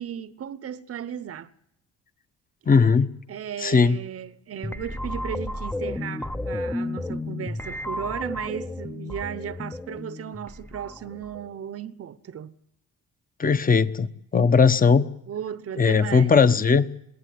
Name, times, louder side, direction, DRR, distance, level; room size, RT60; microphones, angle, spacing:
voice 1, 0.0-1.5 3.3-12.5 15.3-16.5, right 9 dB, 50° right, 1.0 m, -35 dB
voice 2, 2.7-3.1 3.6-4.0 13.4-15.1 15.8-16.9, left 5 dB, 30° left, 1.1 m, -18 dB
sound 1, 4.6-11.5, left 2 dB, 5° left, 0.8 m, -33 dB
22.0 x 16.5 x 9.6 m
cardioid pair, 90°, 30 cm